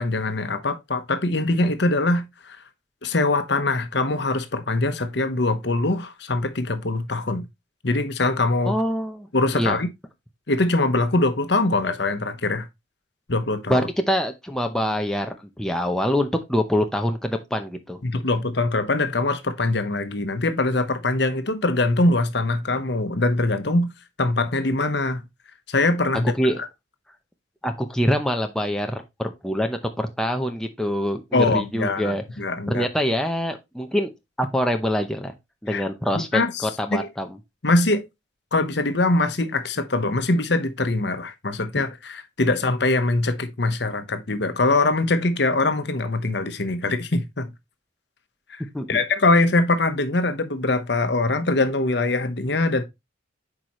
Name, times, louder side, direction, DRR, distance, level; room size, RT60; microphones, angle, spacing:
voice 1, 0.0-2.6 3.0-7.5 7.8-8.8 9.3-9.9 10.5-12.7 13.3-13.9 18.0-23.9 24.2-25.2 25.7-26.3 31.3-32.9 35.7-35.8 36.1-36.7 37.6-38.0 38.5-47.5 48.5-48.6 48.9-52.8, left 2 dB, 60° left, 1.0 m, -23 dB
voice 2, 8.7-9.3 9.5-9.8 13.7-18.0 26.4-26.6 27.6-32.2 32.7-34.1 34.4-35.3 35.6-37.3 41.8-41.9 48.7-48.9, equal, 5° left, 0.7 m, -25 dB
8.3 x 4.9 x 3.0 m
head